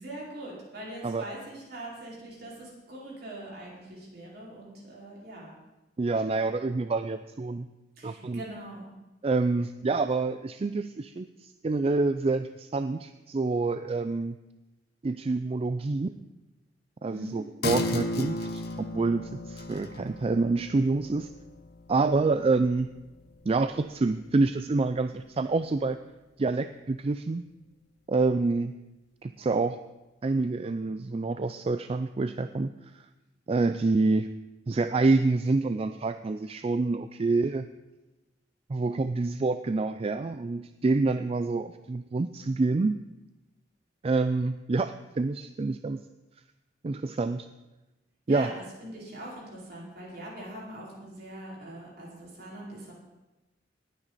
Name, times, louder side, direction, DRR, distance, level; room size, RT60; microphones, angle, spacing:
voice 1, 0.0-5.5 8.0-8.9 17.1-17.5 48.3-52.9, right 1 dB, 60° right, -4 dB, 5.0 m, -42 dB
voice 2, 6.0-7.7 8.0-8.4 9.2-14.4 15.0-16.1 17.0-18.6 18.9-21.3 21.9-22.9 23.5-26.0 26.4-27.4 28.1-28.7 29.2-29.8 30.2-32.7 32.9-33.0 33.5-34.3 34.7-37.7 38.7-43.0 44.0-46.0 46.8-47.5 48.3-48.5, right 3 dB, 30° right, 10 dB, 0.4 m, -27 dB
sound 1, 17.6-24.6 25.0-25.1, left 2 dB, 60° left, 1.1 m, -36 dB
19.5 x 9.0 x 4.1 m, 1.0 s
head